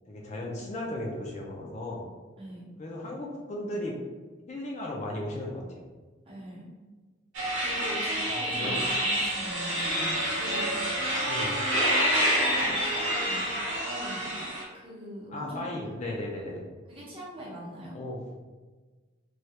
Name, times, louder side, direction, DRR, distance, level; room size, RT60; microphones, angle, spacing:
voice 1, 0.1-2.0 2.8-4.0 4.5-5.8 8.5-8.8 11.3-11.5 15.3-16.6 17.9-18.2, left 1 dB, 35° left, -2 dB, 0.4 m, -35 dB
voice 2, 6.2-6.7 7.6-13.5 13.8-15.7 16.9-18.0, equal, 30° right, -6 dB, 0.8 m, -41 dB
sound 1, 7.3-14.6, equal, 90° right, 0.9 m, -28 dB
3.2 x 2.3 x 2.8 m, 1.3 s
head